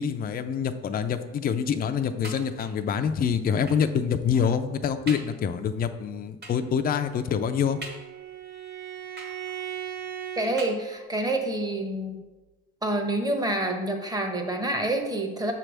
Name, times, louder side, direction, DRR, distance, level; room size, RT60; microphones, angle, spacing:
voice 1, 0.0-7.8, left 7 dB, 30° left, 8 dB, 0.4 m, -26 dB
sound 1, 2.2-2.9 3.7-4.0 4.5-4.6 5.1-5.4 6.4-6.8 7.8-8.4 9.2-9.8 10.6-11.2 12.1-12.2 12.5-12.6, right 2 dB, 35° right, 1.4 m, -43 dB
Bowed string instrument, 7.0-10.5, right 10 dB, 65° right, 1.0 m, -38 dB
voice 2, 10.4-12.2 12.8-15.5, right 1 dB, 15° right, 4 dB, 0.9 m, -27 dB
6.8 x 3.3 x 6.1 m, 1.2 s
cardioid pair, 125°, 29 cm